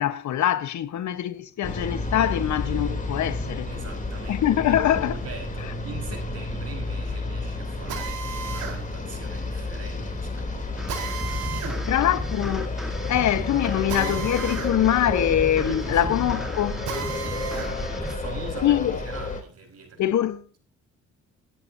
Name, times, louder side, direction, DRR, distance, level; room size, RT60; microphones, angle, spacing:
voice 1, 0.0-3.7 4.3-5.2 11.9-12.8 13.1-16.8 18.6-19.0 20.0-20.4, left 11 dB, 70° left, 1.1 m, -23 dB
sound 1, 1.6-19.4, left 2 dB, 25° left, 3.3 m, -31 dB
voice 2, 3.7-12.3 13.0-14.4 15.6-16.4 16.9-20.1, right 4 dB, 55° right, 4.9 m, -42 dB
Drill, 7.9-17.7 18.2-19.8, right 8 dB, 75° right, 4.1 m, -37 dB
sound 2, 10.8-18.1, right 1 dB, ahead, 1.5 m, -38 dB
20.0 x 10.0 x 2.7 m
cardioid pair, 90°, 30 cm